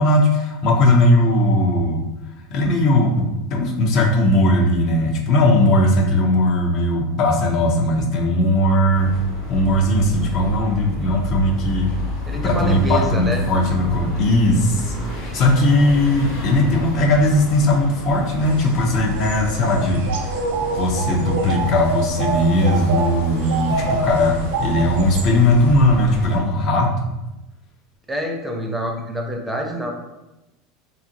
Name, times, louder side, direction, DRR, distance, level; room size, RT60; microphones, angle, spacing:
voice 1, 0.0-2.1 2.5-9.1 9.5-11.9 12.3-20.4 20.7-27.1, left 1 dB, 55° left, 0 dB, 0.6 m, -18 dB
sound 1, 8.9-26.4, left 1 dB, 85° left, 1.1 m, -31 dB
voice 2, 12.3-13.4 28.1-29.9, right 1 dB, 10° right, 2 dB, 0.5 m, -26 dB
sound 2, 18.4-25.7, right 3 dB, 75° right, 0.4 m, -27 dB
2.9 x 2.5 x 2.5 m, 0.98 s
hypercardioid pair, 90°, 0 cm